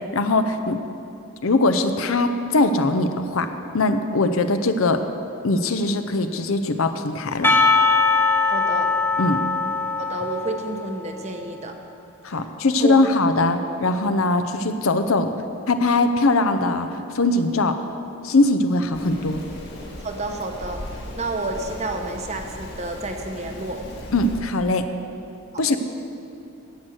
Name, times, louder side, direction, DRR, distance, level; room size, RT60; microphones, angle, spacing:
voice 1, 0.1-0.8 1.4-5.0 5.4-7.5 9.2-9.4 12.2-15.3 15.7-16.9 17.1-17.8 18.2-19.4 24.1-24.9 25.6-25.8, left 2 dB, 75° left, 8 dB, 0.7 m, -21 dB
Percussion, 7.4-11.3, left 3 dB, 10° left, 0.5 m, -21 dB
voice 2, 8.5-8.9 10.0-11.8 12.8-13.1 20.0-23.8 25.5-25.6, right 2 dB, 30° right, 4 dB, 0.9 m, -30 dB
Rain, 18.9-24.4, left 1 dB, 45° left, 1.8 m, -37 dB
10.5 x 8.0 x 7.7 m, 2.7 s
head